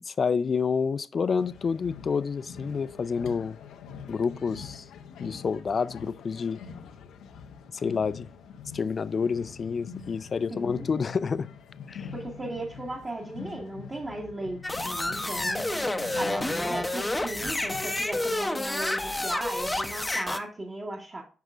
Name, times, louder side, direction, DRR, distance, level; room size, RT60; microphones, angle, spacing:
voice 1, 0.1-3.6 4.1-4.8 5.2-6.6 7.8-8.3 8.7-11.5 11.9-12.1, left 5 dB, 50° left, 0.4 m, -28 dB
sound 1, 1.4-18.4, left 6 dB, 75° left, 0.7 m, -45 dB
voice 2, 10.5-10.9 12.1-21.2, right 2 dB, 35° right, 1.9 m, -37 dB
sound 2, 14.6-20.4, left 1 dB, 15° left, 0.8 m, -29 dB
9.4 x 5.9 x 2.5 m
hypercardioid pair, 45°, 0 cm